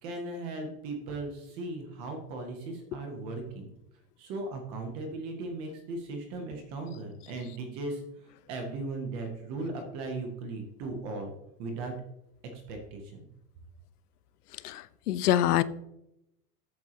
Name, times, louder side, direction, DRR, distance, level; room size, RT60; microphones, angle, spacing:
voice 1, 0.0-3.7 4.2-8.0 8.5-11.3 11.6-11.9 12.7-13.0, right 2 dB, 15° right, 4 dB, 0.5 m, -37 dB
voice 2, 14.6-15.6, left 12 dB, 80° left, 17 dB, 0.8 m, -25 dB
12.5 x 8.8 x 2.8 m, 0.84 s
supercardioid pair, 175°, 45 cm